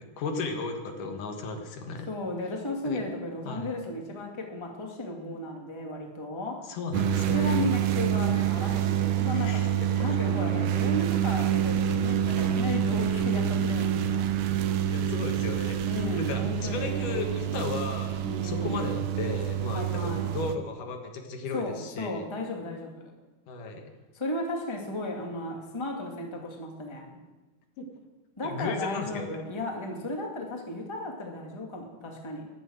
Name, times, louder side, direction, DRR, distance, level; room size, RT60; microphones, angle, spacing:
voice 1, 0.2-2.1 2.8-3.0 3.5-3.7 6.6-7.7 9.3-9.7 10.1-10.2 14.9-15.8 16.2-22.2 23.5-23.9 27.8-27.9 28.4-29.3, left 4 dB, 75° left, 4 dB, 3.1 m, -35 dB
voice 2, 2.1-6.6 7.3-9.6 10.0-14.3 15.8-17.2 18.2-18.8 19.7-20.3 21.5-23.1 24.1-27.2 28.4-32.5, left 1 dB, 10° left, 1 dB, 1.7 m, -34 dB
sound 1, 6.9-20.6, right 10 dB, 75° right, 2.2 m, -27 dB
13.5 x 11.0 x 7.9 m, 1.2 s
omnidirectional pair, 3.7 m